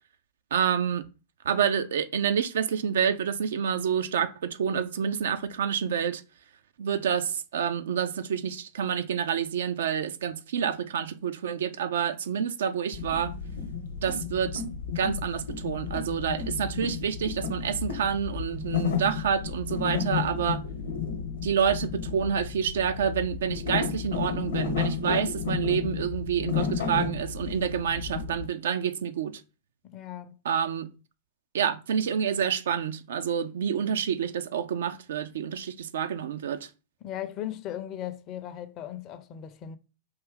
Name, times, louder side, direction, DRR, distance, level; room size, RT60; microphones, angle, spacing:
voice 1, 0.5-1.1 1.5-6.2 6.8-13.3 14.0-14.6 15.0-20.6 21.4-29.4 30.5-30.9 31.5-36.7, right 7 dB, 60° right, 0.3 m, -28 dB
sound 1, 12.9-28.4, left 6 dB, 65° left, 0.8 m, -32 dB
voice 2, 29.8-30.4 37.0-39.8, left 11 dB, 35° left, 0.5 m, -37 dB
4.6 x 2.7 x 3.6 m
figure-of-eight pair, 90°, 0 cm